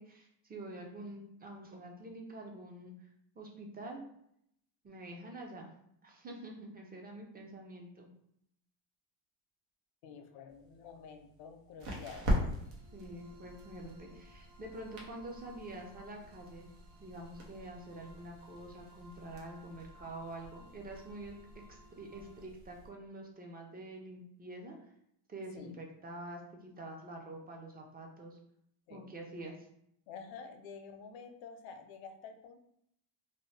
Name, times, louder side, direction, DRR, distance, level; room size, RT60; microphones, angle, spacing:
voice 1, 0.0-3.1 3.4-4.0 4.8-5.7 6.0-8.1 12.9-16.7 17.0-21.4 21.7-24.8 25.3-28.4 28.9-29.7, right 1 dB, 20° right, 1 dB, 0.4 m, -47 dB
voice 2, 10.0-12.7 25.5-25.8 28.9-29.1 30.1-32.6, left 5 dB, 65° left, 6 dB, 0.6 m, -49 dB
sound 1, 10.5-22.9, equal, 85° right, 0.9 m, -42 dB
sound 2, 12.6-22.5, equal, 55° right, 0.9 m, -60 dB
2.7 x 2.0 x 3.1 m, 0.75 s
cardioid pair, 100°, 50 cm